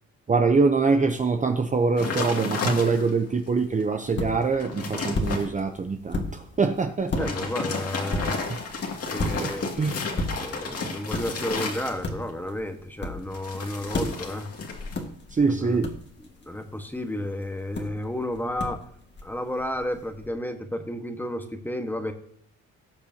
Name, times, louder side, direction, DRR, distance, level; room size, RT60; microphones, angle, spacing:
voice 1, 0.3-7.3 8.5-8.6 9.2-9.5 9.8-10.0 14.0-14.1 15.3-15.9, right 4 dB, 25° right, 5 dB, 0.8 m, -24 dB
sound 1, 2.0-3.3 3.8-3.9 4.3-5.5 7.0-12.3 13.3-15.0 15.3-15.7, left 3 dB, 50° left, 2.3 m, -32 dB
sound 2, 3.5-20.3, left 2 dB, 35° left, 2.0 m, -36 dB
voice 2, 7.2-8.4 9.1-9.6 10.4-14.5 15.6-15.8 16.4-18.8 19.2-22.1, left 1 dB, 5° left, 6 dB, 1.4 m, -32 dB
18.0 x 6.8 x 2.9 m, 0.67 s
cardioid pair, 90°, 30 cm